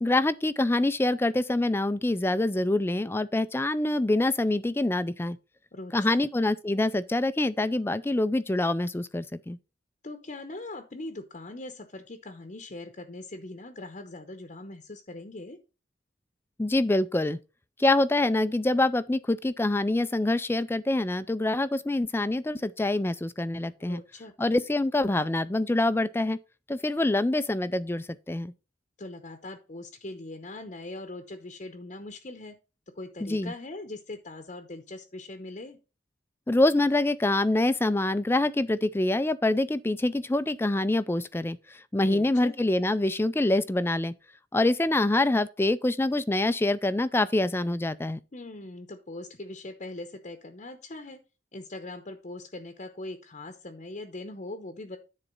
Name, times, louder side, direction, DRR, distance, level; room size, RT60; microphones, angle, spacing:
voice 1, 0.0-5.4 5.9-9.6 16.6-17.4 17.8-24.0 24.4-26.4 26.7-28.5 33.2-33.5 36.5-44.1 44.5-48.2, left 2 dB, 10° left, 0.4 m, -25 dB
voice 2, 5.7-6.2 10.0-15.6 23.8-24.3 29.0-32.6 33.0-35.8 42.0-42.5 48.3-51.2 51.5-55.0, left 2 dB, 40° left, 0.8 m, -41 dB
10.0 x 4.1 x 5.3 m
head